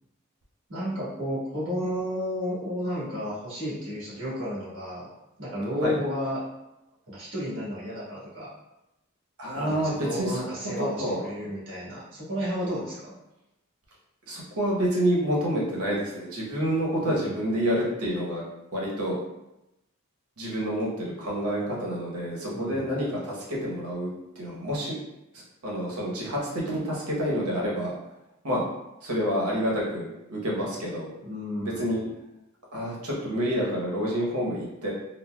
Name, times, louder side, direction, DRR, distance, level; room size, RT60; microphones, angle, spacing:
voice 1, 0.7-5.1 5.4-6.4 7.1-8.5 9.5-13.1 17.0-17.3 22.5-23.0 31.2-32.1, equal, 55° right, -8 dB, 1.4 m, -32 dB
voice 2, 9.4-10.4 10.8-11.3 14.3-18.4 18.7-19.2 20.4-24.1 24.4-25.0 25.6-27.9 28.4-28.7 29.0-31.1 31.6-32.0 32.7-34.9, equal, 85° right, -4 dB, 1.0 m, -28 dB
3.9 x 2.1 x 2.3 m, 0.93 s
head